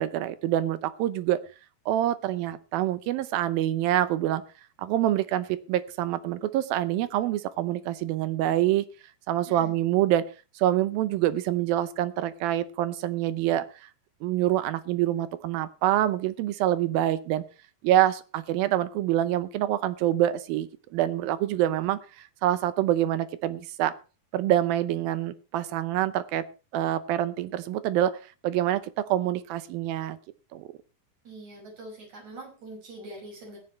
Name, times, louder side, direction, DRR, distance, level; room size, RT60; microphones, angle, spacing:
voice 1, 0.0-1.4 1.9-4.4 4.8-8.9 9.3-10.3 10.6-13.7 14.2-17.4 17.8-22.0 22.4-23.9 24.3-26.5 26.7-30.2 30.5-30.7, right 13 dB, 75° right, 14 dB, 2.4 m, -26 dB
voice 2, 31.2-33.6, right 2 dB, 45° right, -1 dB, 6.7 m, -43 dB
19.0 x 10.5 x 3.2 m, 0.33 s
omnidirectional pair, 4.6 m